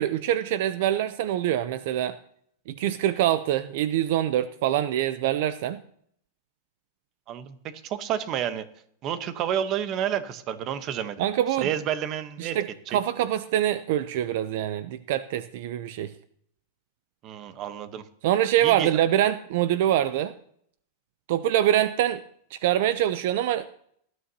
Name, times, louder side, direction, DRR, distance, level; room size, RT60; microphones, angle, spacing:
voice 1, 0.0-2.2 2.7-5.8 11.2-11.7 12.4-16.1 18.2-20.3 21.3-22.2 22.5-23.7, right 12 dB, 55° right, 13 dB, 0.6 m, -24 dB
voice 2, 7.3-8.7 9.0-11.3 11.6-12.6 12.9-13.0 17.2-18.0 18.6-19.0, right 9 dB, 30° right, 12 dB, 1.0 m, -30 dB
18.5 x 12.5 x 2.8 m, 0.66 s
supercardioid pair, 165°, 0 cm